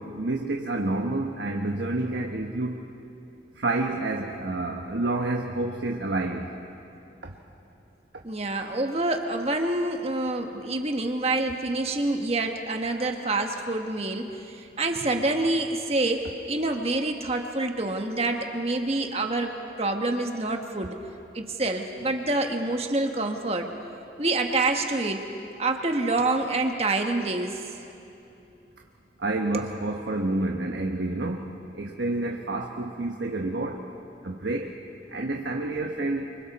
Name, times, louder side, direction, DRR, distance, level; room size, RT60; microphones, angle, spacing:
voice 1, 0.0-2.8 3.6-6.5 7.2-7.3 29.2-33.9 34.2-34.7 35.1-36.3, right 2 dB, 90° right, 1 dB, 1.3 m, -29 dB
voice 2, 8.2-21.0 21.3-23.7 24.2-25.2 25.6-27.6 29.5-29.6, right 2 dB, 35° right, 4 dB, 1.4 m, -27 dB
29.0 x 25.5 x 4.2 m, 2.8 s
head